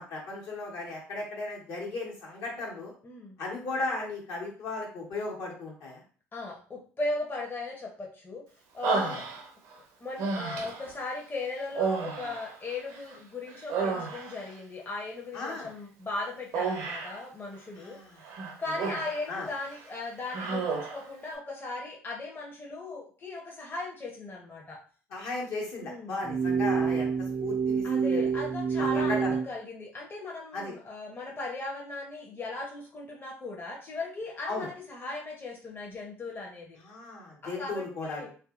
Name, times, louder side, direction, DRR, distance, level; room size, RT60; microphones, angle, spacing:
voice 1, 0.0-2.9 3.4-6.0 8.9-9.2 15.3-15.7 17.8-18.2 18.8-18.9 19.3-19.5 25.1-28.3 28.8-29.4 30.5-30.7 34.5-34.7 36.8-38.3, left 2 dB, 70° left, -3 dB, 1.2 m, -36 dB
voice 2, 3.0-3.4 6.3-8.4 8.7-9.2 10.0-18.3 18.6-24.8 25.8-26.3 27.8-36.8 37.4-38.3, left 2 dB, 35° left, -1 dB, 0.8 m, -37 dB
Human voice, 8.8-9.7 10.2-10.9 11.7-13.2 13.5-14.5 16.5-17.2 18.2-19.3 19.6-19.8 20.3-21.1, right 4 dB, 75° right, 0.6 m, -32 dB
sound 1, 26.2-29.5, right 6 dB, 30° right, 0.4 m, -27 dB
2.7 x 2.6 x 2.4 m, 0.41 s
hypercardioid pair, 65°, 6 cm